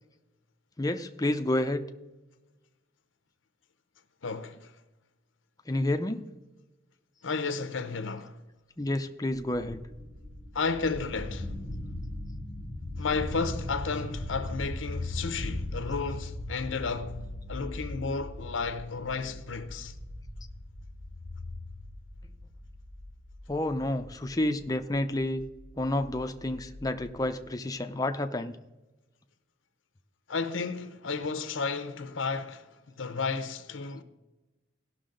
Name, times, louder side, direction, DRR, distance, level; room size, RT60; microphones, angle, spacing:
voice 1, 0.8-1.9 5.7-6.3 8.8-9.8 23.5-25.4 25.8-28.6, left 1 dB, 20° left, 0.6 m, -30 dB
voice 2, 4.2-4.7 7.2-8.4 10.5-11.5 13.0-19.9 30.3-34.0, left 4 dB, 90° left, 0.8 m, -33 dB
sound 1, 9.4-27.2, left 1 dB, 45° right, 3.4 m, -39 dB
16.5 x 6.2 x 3.8 m
head